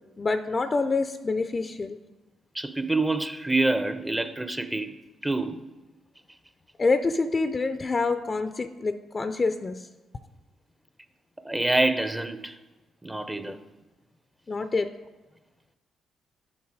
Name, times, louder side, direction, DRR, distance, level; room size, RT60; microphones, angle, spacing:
voice 1, 0.2-2.0 6.8-9.9 13.4-13.6 14.5-14.9, left 3 dB, 35° left, 0.4 m, -26 dB
voice 2, 2.5-5.0 5.2-5.6 11.4-12.6 13.0-13.6, right 2 dB, 15° right, 0.6 m, -26 dB
7.2 x 5.5 x 4.8 m
hypercardioid pair, 50°, 0 cm